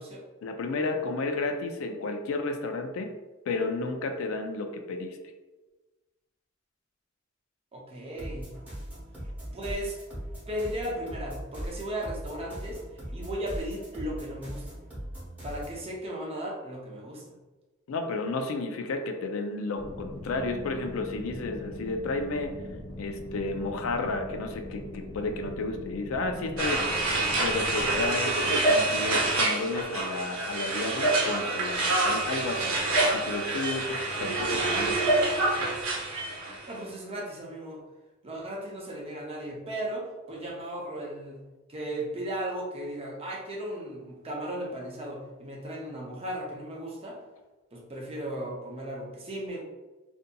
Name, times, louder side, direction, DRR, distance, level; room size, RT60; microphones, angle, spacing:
voice 1, 0.4-3.1 3.5-5.2 17.9-22.6 23.0-26.9 27.4-32.7 33.1-35.0, left 3 dB, 85° left, 5 dB, 0.4 m, -32 dB
voice 2, 7.7-8.6 9.4-10.0 10.5-12.8 13.1-14.8 15.4-17.2 36.6-37.8 38.2-41.4 41.7-47.2 47.7-49.6, right 1 dB, 30° right, -2 dB, 0.5 m, -36 dB
sound 1, 8.2-15.8, equal, 10° right, 0.9 m, -39 dB
sound 2, 19.8-28.1, left 1 dB, 20° left, 0.9 m, -41 dB
sound 3, 26.6-36.6, right 2 dB, 80° right, 0.8 m, -27 dB
2.6 x 2.5 x 2.2 m, 1.2 s
head